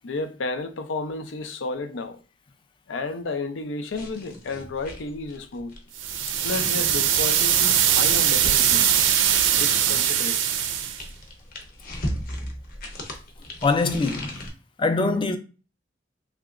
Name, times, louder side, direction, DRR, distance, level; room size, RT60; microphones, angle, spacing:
voice 1, 0.0-2.2 2.9-5.7 6.4-8.9 9.5-10.4, left 3 dB, 80° left, 0.5 m, -32 dB
sound 1, 3.9-9.7 10.5-14.5, left 1 dB, 50° left, 0.8 m, -37 dB
sound 2, 6.0-11.0, right 9 dB, 80° right, 0.4 m, -21 dB
voice 2, 13.6-14.4 14.8-15.4, left 3 dB, 25° left, 0.4 m, -23 dB
3.3 x 2.8 x 2.4 m
head